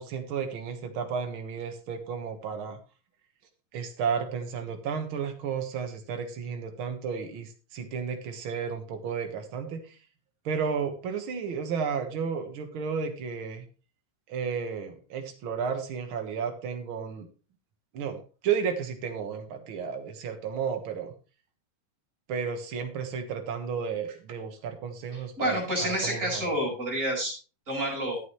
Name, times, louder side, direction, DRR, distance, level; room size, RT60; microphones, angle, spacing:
voice 1, 0.0-2.8 3.7-10.0 10.5-13.7 14.3-17.3 17.9-21.1 22.3-26.5, right 6 dB, 55° right, 5 dB, 1.7 m, -33 dB
voice 2, 25.4-27.3 27.7-28.2, right 1 dB, 20° right, -3 dB, 5.4 m, -28 dB
13.0 x 8.4 x 3.1 m, 0.34 s
omnidirectional pair, 3.7 m